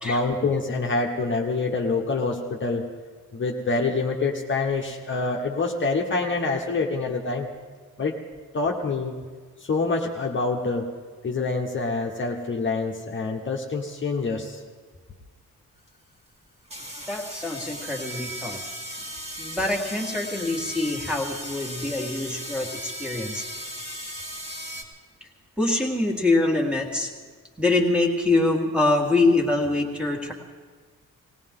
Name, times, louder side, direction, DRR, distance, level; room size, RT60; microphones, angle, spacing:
voice 1, 0.0-2.9 3.3-7.5 8.0-8.2 8.5-9.1 9.6-10.9 11.2-14.6, left 3 dB, 35° left, 0 dB, 1.1 m, -26 dB
sound 1, 15.9-16.0 16.6-24.8, equal, 20° right, 2.0 m, -36 dB
voice 2, 17.1-18.6 19.4-23.4 25.6-27.1 27.6-30.3, left 2 dB, 5° right, 0 dB, 1.8 m, -24 dB
19.0 x 18.5 x 3.7 m, 1.5 s
wide cardioid pair, 160°, 33 cm